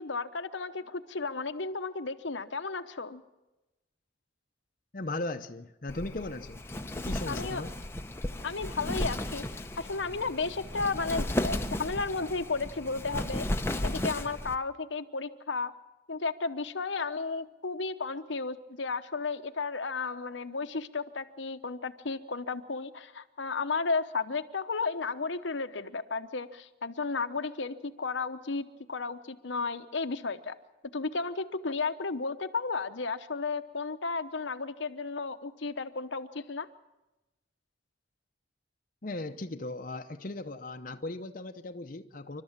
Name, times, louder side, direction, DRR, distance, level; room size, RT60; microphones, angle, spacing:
voice 1, 0.0-3.2 7.3-7.6 8.4-13.5 13.8-15.7 16.1-30.5 30.9-36.7, left 4 dB, 75° left, 9 dB, 0.9 m, -33 dB
voice 2, 4.9-6.6 6.9-7.7 39.0-42.4, left 2 dB, 45° left, 5 dB, 0.8 m, -37 dB
Wind, 5.9-14.6, left 1 dB, 15° left, 0.8 m, -34 dB
28.5 x 12.5 x 7.4 m, 1.0 s
head